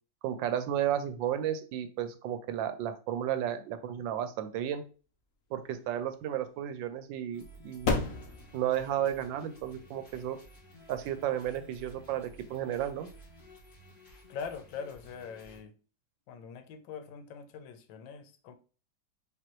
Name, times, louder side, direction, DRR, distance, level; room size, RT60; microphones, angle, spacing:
voice 1, 0.2-4.8 5.5-8.1 8.5-10.4 10.9-13.1, right 10 dB, 80° right, 1.3 m, -33 dB
sound 1, 5.2-12.5, left 4 dB, 60° left, 0.9 m, -38 dB
sound 2, 7.3-15.6, equal, 30° left, 1.5 m, -54 dB
voice 2, 14.3-15.7 16.3-18.5, left 6 dB, 80° left, 1.3 m, -42 dB
5.1 x 2.9 x 3.0 m
omnidirectional pair, 2.0 m